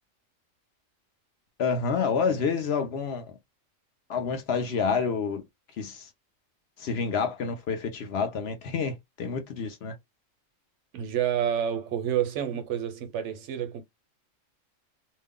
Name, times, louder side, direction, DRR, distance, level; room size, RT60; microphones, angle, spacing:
voice 1, 1.6-3.2 4.1-5.4 5.8-6.1 6.8-9.9, left 5 dB, 60° left, 0.8 m, -28 dB
voice 2, 10.9-13.8, right 9 dB, 70° right, 0.9 m, -29 dB
2.6 x 2.1 x 3.6 m
omnidirectional pair, 1.3 m